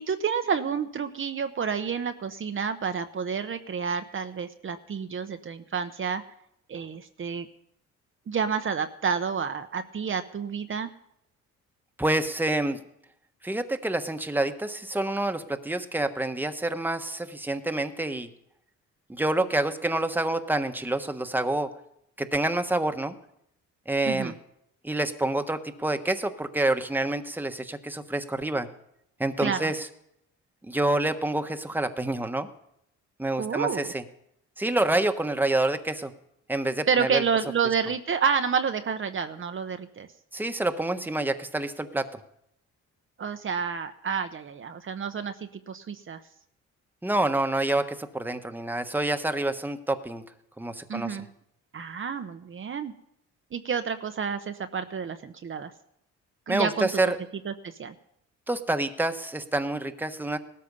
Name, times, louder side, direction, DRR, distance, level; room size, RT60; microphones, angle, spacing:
voice 1, 0.0-6.2 6.7-7.5 8.3-10.9 24.1-24.3 29.4-29.7 33.4-33.9 36.9-40.1 43.2-46.2 50.9-51.3 51.7-52.9 53.5-55.7 56.5-56.9 57.4-57.9, right 6 dB, 45° right, 8 dB, 1.0 m, -29 dB
voice 2, 12.0-12.8 13.4-18.3 19.1-21.7 22.2-23.1 23.9-24.3 24.8-28.7 29.2-29.9 30.7-32.5 33.2-34.0 34.6-36.1 36.5-37.2 40.3-42.2 47.0-50.2 50.6-51.2 56.5-57.2 58.5-60.4, right 2 dB, 5° right, 7 dB, 1.3 m, -27 dB
18.0 x 13.0 x 5.5 m, 0.76 s
cardioid pair, 90°, 30 cm